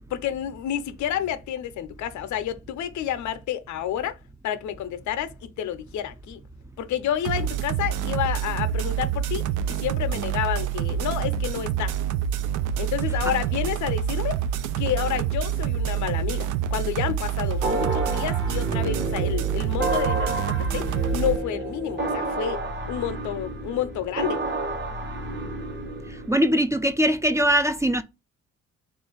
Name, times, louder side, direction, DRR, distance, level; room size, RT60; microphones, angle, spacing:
voice 1, 0.1-4.2 4.4-6.4 6.8-11.9 12.8-14.4 14.8-20.9 21.1-22.6 22.9-24.4, left 10 dB, 75° left, 0.6 m, -29 dB
sound 1, 7.2-21.4, right 9 dB, 90° right, 0.5 m, -27 dB
sound 2, 17.6-26.3, right 2 dB, 35° right, 1.0 m, -30 dB
voice 2, 26.3-28.0, equal, 10° right, 0.3 m, -21 dB
3.3 x 2.5 x 3.8 m
cardioid pair, 90°, 30 cm